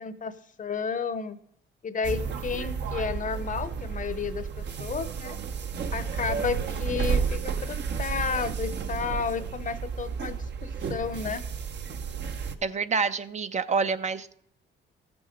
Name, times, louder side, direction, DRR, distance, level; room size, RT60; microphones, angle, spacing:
voice 1, 0.0-1.4 1.8-5.4 5.9-11.4, left 6 dB, 40° left, 14 dB, 0.8 m, -32 dB
sound 1, 2.0-12.6, right 6 dB, 60° right, 0.9 m, -32 dB
voice 2, 12.6-14.4, right 5 dB, 35° right, 11 dB, 0.6 m, -27 dB
14.0 x 7.0 x 5.2 m, 0.68 s
cardioid pair, 90°, 20 cm